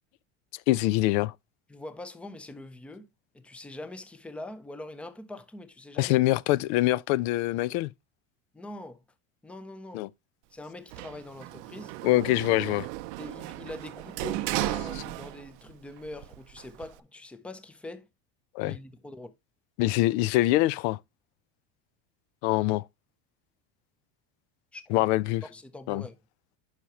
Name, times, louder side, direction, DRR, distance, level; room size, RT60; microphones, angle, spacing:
voice 1, 0.7-1.3 6.0-7.9 9.9-10.1 12.0-12.9 18.5-18.7 19.8-21.0 22.4-22.8 24.9-25.4 25.9-26.0, left 17 dB, 80° left, 0.5 m, -24 dB
voice 2, 1.7-3.1 3.3-6.2 8.5-9.0 9.4-10.0 10.5-11.9 13.2-18.1 18.6-19.3 24.7-25.1 25.5-26.2, left 2 dB, 5° left, 0.5 m, -43 dB
Sliding door, 10.9-15.7 16.1-17.0, right 17 dB, 80° right, 0.6 m, -35 dB
9.6 x 5.7 x 2.9 m
cardioid pair, 155°, 33 cm